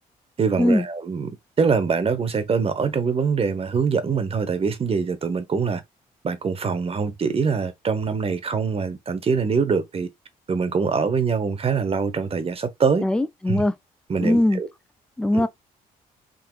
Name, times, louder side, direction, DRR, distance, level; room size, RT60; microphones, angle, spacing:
voice 1, 0.4-1.3 1.6-5.8 6.2-10.1 10.5-13.0 13.5-13.6 14.1-14.7 15.3-15.4, right 5 dB, 40° right, 1.0 m, -23 dB
voice 2, 13.0-13.7 14.2-14.6 15.2-15.5, left 1 dB, 5° left, 0.4 m, -20 dB
3.8 x 2.7 x 2.4 m
supercardioid pair, 70°, 16 cm